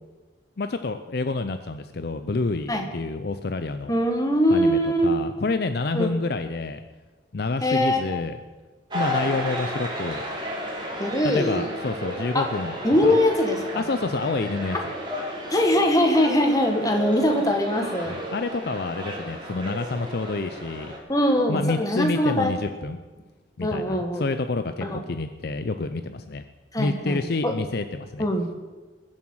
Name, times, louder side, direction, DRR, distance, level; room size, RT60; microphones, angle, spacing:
voice 1, 0.6-3.9 4.5-6.8 7.3-8.4 8.9-10.2 11.2-12.8 13.0-13.2 13.8-14.8 18.1-20.9 21.5-23.0 23.6-26.4 26.8-28.2, left 3 dB, 55° left, 9 dB, 0.5 m, -28 dB
voice 2, 3.9-5.1 5.9-6.1 7.6-8.2 11.0-11.7 12.3-12.5 12.8-13.8 15.5-18.1 21.1-22.6 23.6-24.2 24.8-25.0 26.7-27.6 28.2-28.5, equal, 20° left, 3 dB, 1.6 m, -22 dB
sound 1, 8.9-21.0, equal, 25° right, 2.8 m, -33 dB
21.0 x 7.3 x 6.3 m, 1.3 s
head